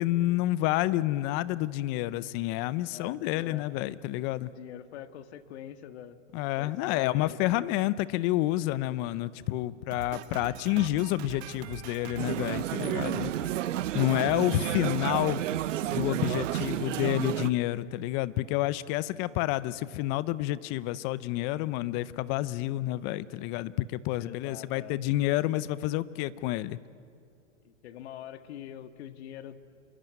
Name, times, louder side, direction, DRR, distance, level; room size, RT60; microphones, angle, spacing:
voice 1, 0.0-4.5 6.3-13.3 13.9-15.4 15.9-26.8, left 16 dB, 30° left, 18 dB, 0.6 m, -29 dB
voice 2, 2.8-3.7 4.4-6.2 6.6-7.7 13.4-13.6 24.2-25.0 27.6-29.6, left 10 dB, 60° left, 10 dB, 1.7 m, -44 dB
Drum kit, 9.9-17.7, right 11 dB, 60° right, 1.6 m, -43 dB
sound 1, 12.2-17.5, right 12 dB, 75° right, 0.8 m, -31 dB
28.0 x 22.0 x 9.3 m, 2.4 s
hypercardioid pair, 135°, 38 cm